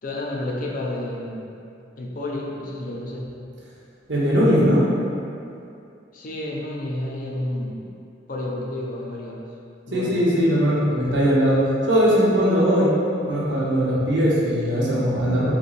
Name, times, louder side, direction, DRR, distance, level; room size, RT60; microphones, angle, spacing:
voice 1, 0.0-1.6 2.0-3.3 6.1-7.9 8.3-9.4 9.9-10.2 10.8-10.9, left 1 dB, 50° left, -2 dB, 0.5 m, -30 dB
voice 2, 4.1-4.8 9.9-12.9 13.3-15.5, equal, 75° right, -6 dB, 0.9 m, -19 dB
3.3 x 3.1 x 4.0 m, 2.6 s
head